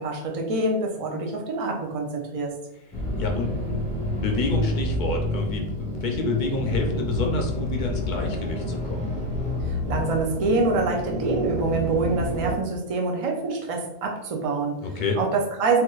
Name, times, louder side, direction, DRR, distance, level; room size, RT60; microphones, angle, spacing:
voice 1, 0.0-2.5 9.5-15.8, right 3 dB, 50° right, 1 dB, 0.4 m, -26 dB
sound 1, 2.9-12.6, left 1 dB, 10° left, 0.5 m, -29 dB
voice 2, 3.2-3.5 4.1-9.1 14.8-15.2, left 3 dB, 55° left, 2 dB, 0.6 m, -28 dB
4.1 x 2.5 x 2.4 m, 0.86 s
omnidirectional pair, 1.3 m